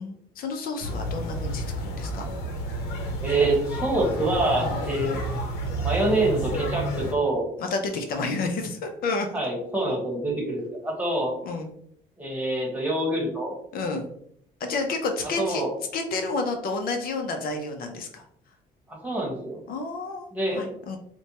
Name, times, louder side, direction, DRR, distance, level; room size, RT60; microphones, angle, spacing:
voice 1, 0.0-2.2 4.6-4.8 7.6-9.3 11.4-11.7 13.7-14.1 14.6-15.6 15.9-18.2 19.7-20.3 20.5-21.0, left 3 dB, 60° left, 4 dB, 0.6 m, -30 dB
sound 1, 0.8-7.1, right 1 dB, 90° left, 0.8 m, -30 dB
voice 2, 3.2-5.2 5.8-7.5 9.3-11.3 12.2-13.5 15.4-15.7 18.9-19.6 20.3-20.6, right 2 dB, 10° right, -2 dB, 1.2 m, -26 dB
4.2 x 2.2 x 2.8 m, 0.69 s
cardioid pair, 110°, 17 cm